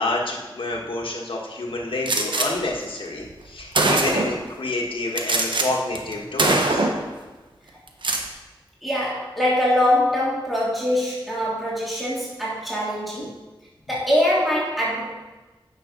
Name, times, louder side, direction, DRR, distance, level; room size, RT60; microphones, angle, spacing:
voice 1, 0.0-6.9, left 2 dB, 80° left, -1 dB, 1.7 m, -28 dB
Gunshot gunfire, 2.1-2.5 3.3-3.4 3.7-4.4 5.2-5.7 6.0-6.1 6.4-7.1 7.9-8.3, right 2 dB, 65° right, 1.2 m, -21 dB
voice 2, 8.8-13.3 13.9-15.1, left 1 dB, ahead, -7 dB, 3.1 m, -23 dB
9.1 x 6.6 x 5.4 m, 1.2 s
wide cardioid pair, 60°, 9 cm